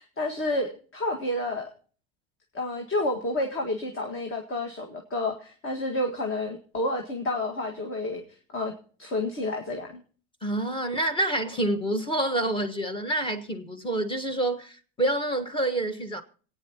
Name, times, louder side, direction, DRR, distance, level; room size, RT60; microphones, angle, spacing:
voice 1, 0.0-1.7 2.5-8.2 8.5-8.7 9.0-10.0, left 2 dB, 30° left, 1.8 m, -30 dB
voice 2, 10.4-16.2, right 1 dB, 10° left, 1.4 m, -27 dB
26.5 x 9.2 x 2.9 m
supercardioid pair, 105°, 40 cm